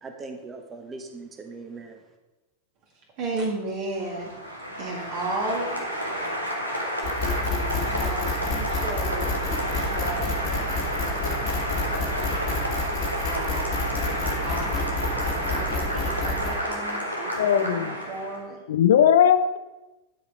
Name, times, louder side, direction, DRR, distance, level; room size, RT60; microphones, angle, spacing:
voice 1, 0.0-2.0, right 3 dB, 20° right, 5 dB, 1.2 m, -40 dB
voice 2, 3.2-4.3 4.8-5.8 7.5-10.3 10.9-11.7 13.2-13.8 14.4-15.0 15.5-18.6, right 2 dB, 40° right, -3 dB, 2.1 m, -34 dB
Applause, 3.9-18.4, equal, 90° right, 1.5 m, -30 dB
sound 1, 7.0-16.5, left 3 dB, 40° left, 1.8 m, -29 dB
sound 2, 7.2-13.3 13.7-16.6, left 2 dB, 10° left, 1.2 m, -43 dB
voice 3, 17.4-18.0 18.7-19.6, left 9 dB, 60° left, 12 dB, 0.5 m, -19 dB
10.5 x 4.9 x 4.9 m, 1.1 s
figure-of-eight pair, 90°, 0 cm